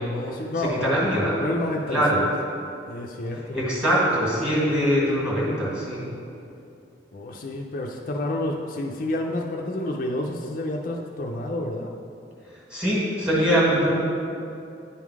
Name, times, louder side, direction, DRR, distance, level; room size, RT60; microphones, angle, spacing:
voice 1, 0.0-0.9 1.4-2.3 2.9-3.6 7.1-11.9, left 1 dB, 50° left, 1 dB, 0.4 m, -29 dB
voice 2, 0.6-1.4 1.9-2.3 3.3-6.0 12.7-13.9, equal, 5° right, -6 dB, 1.7 m, -23 dB
10.0 x 3.7 x 4.7 m, 2.6 s
head